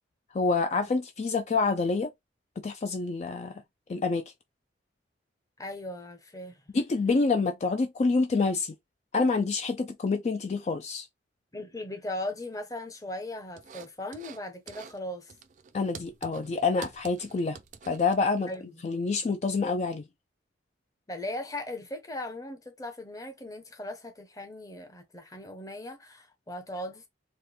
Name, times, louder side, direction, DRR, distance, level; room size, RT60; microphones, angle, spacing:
voice 1, 0.3-2.1 2.6-3.6 3.9-4.2 6.7-8.7 9.1-11.1 15.7-17.6 17.9-18.5 18.8-20.0, left 4 dB, 35° left, 0.3 m, -27 dB
voice 2, 5.6-6.6 11.5-15.3 18.5-18.7 21.1-27.1, left 1 dB, 20° left, 0.8 m, -38 dB
sound 1, 13.6-14.4 14.7-15.0 15.3-18.6, right 6 dB, 45° right, 0.4 m, -47 dB
4.3 x 2.2 x 3.2 m
head